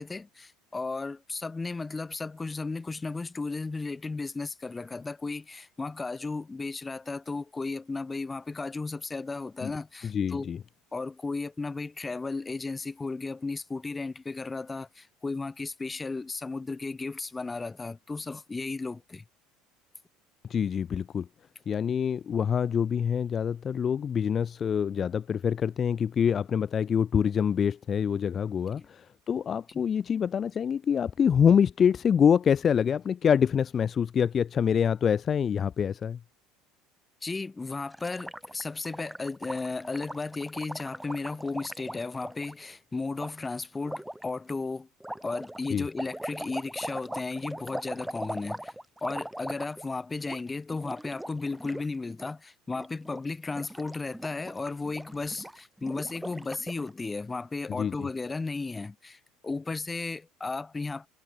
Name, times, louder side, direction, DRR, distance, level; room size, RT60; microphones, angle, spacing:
voice 1, 0.0-10.5 10.9-19.2 28.7-28.9 37.2-44.9 45.2-48.7 49.0-61.1, left 3 dB, 15° left, 2.5 m, -35 dB
voice 2, 10.0-10.6 20.5-21.3 21.7-36.2 45.7-45.8 57.7-58.1, left 7 dB, 35° left, 1.1 m, -26 dB
Gurgling, 37.9-42.5 43.2-43.3 43.9-44.2 45.0-50.0 50.2-50.4 50.7-51.9 52.1-52.3 52.7-53.2 53.5-56.9, right 1 dB, 5° right, 5.0 m, -40 dB
supercardioid pair, 100°, 0 cm